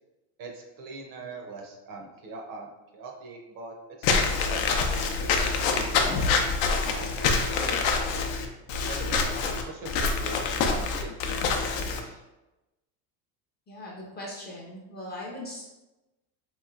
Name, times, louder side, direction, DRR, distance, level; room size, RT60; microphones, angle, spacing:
voice 1, 0.4-3.7 4.1-4.2 4.5-4.6 4.9-6.2 6.8-7.7 8.9-9.3 9.6-10.3 10.6-12.2, right 3 dB, 45° right, 1 dB, 0.6 m, -42 dB
Walk footsteps / Squeak, 4.0-12.0, left 4 dB, 90° left, 0.6 m, -26 dB
voice 2, 13.7-15.6, left 1 dB, 20° left, -3 dB, 0.4 m, -39 dB
3.0 x 2.9 x 2.4 m, 1.0 s
supercardioid pair, 125°, 48 cm